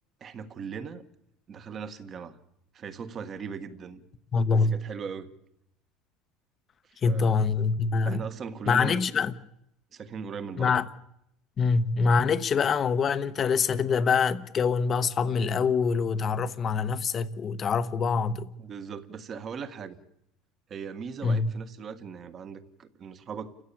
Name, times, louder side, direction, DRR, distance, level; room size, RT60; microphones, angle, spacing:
voice 1, 0.2-1.0 1.5-2.4 2.7-4.0 4.5-5.3 6.9-7.4 8.0-9.0 9.9-10.7 18.6-20.0 20.7-23.6, right 6 dB, 30° right, 1.5 m, -39 dB
voice 2, 4.3-4.8 7.0-8.2 8.7-9.3 10.6-10.8 11.6-18.5 21.2-21.5, left 5 dB, 25° left, 1.0 m, -25 dB
29.5 x 15.5 x 8.7 m
cardioid pair, 155°, 0 cm